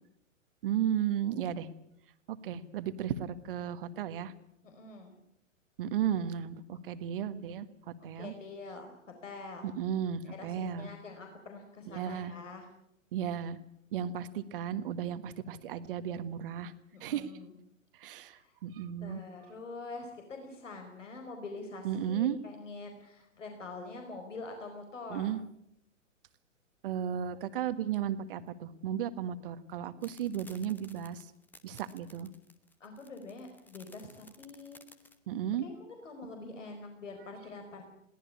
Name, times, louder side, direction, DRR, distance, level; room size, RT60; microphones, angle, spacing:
voice 1, 0.6-1.7 2.3-4.3 5.8-8.3 9.6-10.9 11.9-12.3 13.1-13.6 13.9-16.7 17.0-17.3 18.0-19.2 21.8-22.4 25.1-25.4 26.8-31.2 31.6-32.3 35.3-35.6, right 9 dB, 45° right, 12 dB, 1.6 m, -34 dB
voice 2, 4.6-5.1 8.1-8.9 9.2-9.7 10.2-12.7 16.9-17.5 18.2-18.5 19.0-25.3 32.8-34.8 35.6-37.8, left 3 dB, 65° left, 4 dB, 4.8 m, -45 dB
sound 1, 30.0-35.2, left 2 dB, 5° left, 1.1 m, -56 dB
22.5 x 17.5 x 8.5 m, 0.79 s
figure-of-eight pair, 115°, 39 cm